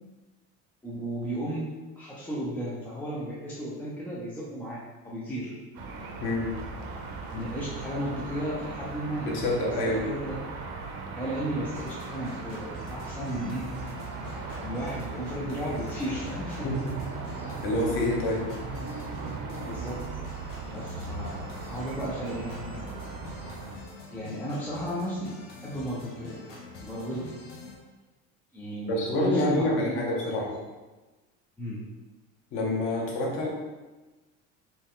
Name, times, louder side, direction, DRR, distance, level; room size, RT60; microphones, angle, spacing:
voice 1, 0.8-1.7 2.0-5.6 7.3-10.4 11.2-13.7 14.6-16.7 19.6-20.0 20.7-21.4 21.7-22.9 24.1-26.5 26.8-27.3 28.5-30.6 31.6-31.9, equal, 5° left, -7 dB, 0.4 m, -34 dB
sound 1, 5.7-23.8, right 3 dB, 65° right, 0.8 m, -38 dB
voice 2, 9.2-10.1 16.6-16.9 17.6-18.5 28.9-30.6 32.5-33.5, left 1 dB, 40° left, -1 dB, 1.0 m, -27 dB
sound 2, 11.7-27.7, left 4 dB, 80° left, 1.2 m, -46 dB
4.3 x 3.0 x 3.7 m, 1.2 s
cardioid pair, 170°, 32 cm